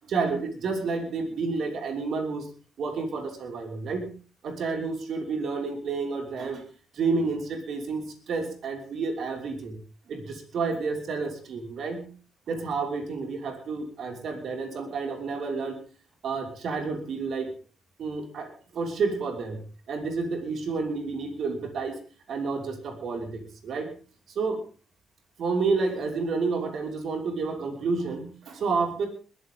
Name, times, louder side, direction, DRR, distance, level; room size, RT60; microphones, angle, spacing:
voice 1, 0.0-2.5 2.8-4.1 4.4-6.6 6.9-9.8 10.1-12.1 12.5-15.8 16.2-17.5 18.0-19.6 19.9-22.0 22.3-23.9 24.3-24.6 25.4-29.1, right 4 dB, 65° right, 4 dB, 5.7 m, -30 dB
21.5 x 15.5 x 3.8 m, 0.37 s
cardioid pair, 100°, 0 cm